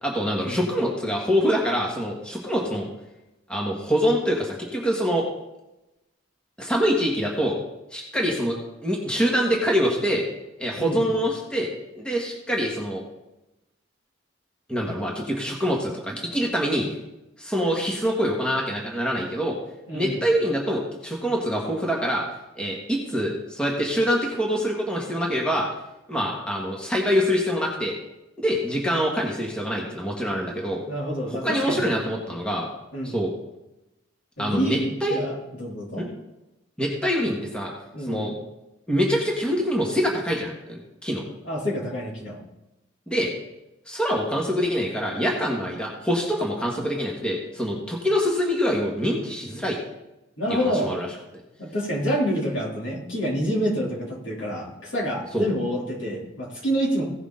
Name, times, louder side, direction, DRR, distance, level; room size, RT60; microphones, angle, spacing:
voice 1, 0.0-2.9 3.5-5.3 6.6-7.6 7.9-8.6 8.8-10.2 10.6-11.7 11.9-13.0 14.7-16.9 17.4-19.6 19.9-22.2 22.5-25.7 26.1-27.9 28.4-30.8 31.3-32.7 33.0-33.3 34.4-35.2 36.0-36.1 36.8-37.7 38.1-38.3 38.9-41.2 43.1-43.3 43.9-49.8 50.5-51.1 55.3-55.5, equal, 5° left, -2 dB, 1.5 m, -25 dB
voice 2, 10.8-11.1 19.9-20.2 30.9-31.9 32.9-33.2 34.4-36.1 37.9-38.3 41.4-42.4 50.4-50.9 51.6-57.0, equal, 70° left, -3 dB, 3.2 m, -27 dB
16.5 x 6.5 x 3.9 m, 0.95 s
head